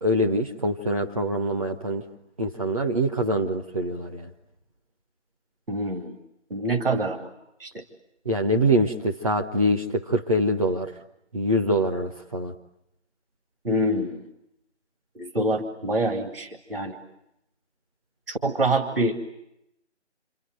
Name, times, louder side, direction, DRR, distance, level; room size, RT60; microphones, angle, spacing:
voice 1, 0.0-2.0 2.4-4.3 8.3-10.9 11.3-12.5, equal, 30° right, 2 dB, 1.1 m, -24 dB
voice 2, 5.7-6.1 6.5-7.3 7.6-7.8 13.6-14.2 15.2-17.0 18.3-19.2, right 1 dB, 50° right, 4 dB, 2.3 m, -26 dB
29.5 x 25.0 x 7.8 m, 0.84 s
figure-of-eight pair, 160°, 35 cm